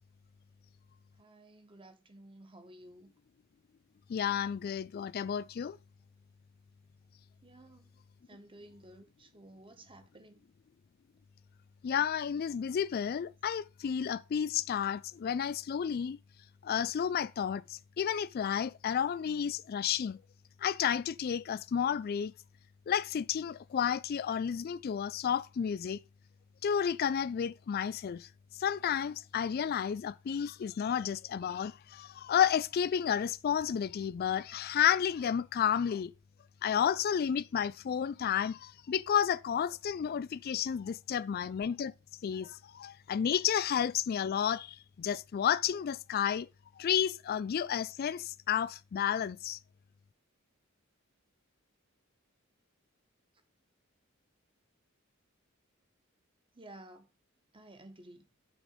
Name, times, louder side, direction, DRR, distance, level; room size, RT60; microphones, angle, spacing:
voice 1, 1.2-3.1 7.4-7.9 8.3-10.5 56.5-57.1 57.5-58.2, right 1 dB, 25° right, 1.4 m, -54 dB
voice 2, 4.1-5.8 11.8-16.2 16.6-20.2 20.6-22.3 22.9-26.0 26.6-28.3 28.6-36.1 36.6-41.9 42.2-46.5 46.8-49.6, left 8 dB, 45° left, 0.3 m, -31 dB
6.2 x 5.0 x 6.6 m
head